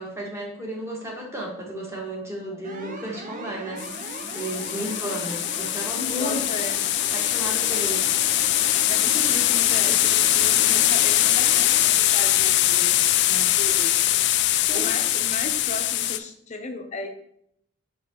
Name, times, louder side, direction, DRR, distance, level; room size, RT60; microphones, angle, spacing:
voice 1, 0.0-6.4 7.1-8.0 14.7-14.9, right 1 dB, 15° right, -3 dB, 1.5 m, -33 dB
sound 1, 2.6-11.9, right 3 dB, 40° right, 0.5 m, -39 dB
sound 2, 3.8-16.2, left 13 dB, 55° left, 0.4 m, -22 dB
voice 2, 6.2-6.8 8.9-14.0 14.7-17.1, left 2 dB, 35° left, 4 dB, 0.8 m, -35 dB
6.3 x 5.7 x 3.0 m, 0.72 s
head